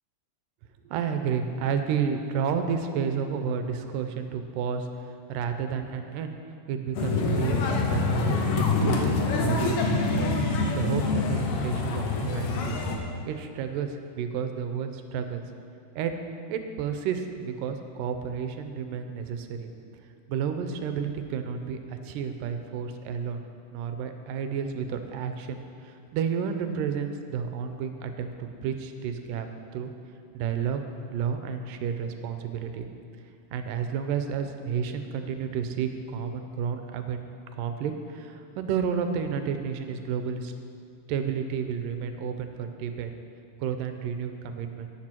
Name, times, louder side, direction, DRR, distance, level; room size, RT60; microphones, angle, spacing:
voice 1, 0.8-4.9 5.3-6.3 6.7-10.3 10.7-12.8 13.3-15.4 16.0-16.1 16.5-19.7 20.3-21.8 22.0-23.4 23.7-29.5 29.7-29.9 30.3-30.8 31.1-32.9 33.5-37.2 37.5-40.5 41.1-43.1 43.6-44.9, right 7 dB, 85° right, 7 dB, 2.3 m, -31 dB
sound 1, 7.0-13.0, left 3 dB, 65° left, 2.0 m, -26 dB
12.5 x 9.9 x 4.5 m, 2.4 s
omnidirectional pair, 3.9 m